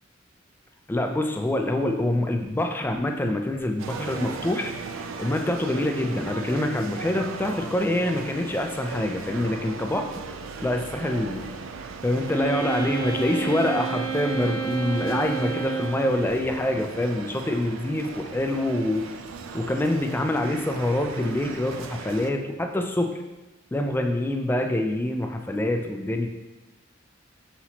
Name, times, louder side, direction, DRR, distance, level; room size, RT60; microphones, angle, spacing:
voice 1, 0.9-4.7 5.2-10.1 10.6-11.5 12.0-19.0 19.5-23.1 23.7-26.3, left 1 dB, 10° left, 4 dB, 0.3 m, -25 dB
sound 1, 3.8-22.3, right 4 dB, 80° right, 0.4 m, -38 dB
Wind instrument woodwind instrument, 12.3-16.3, right 5 dB, 60° right, 0.9 m, -30 dB
5.8 x 2.9 x 2.8 m, 1.1 s
head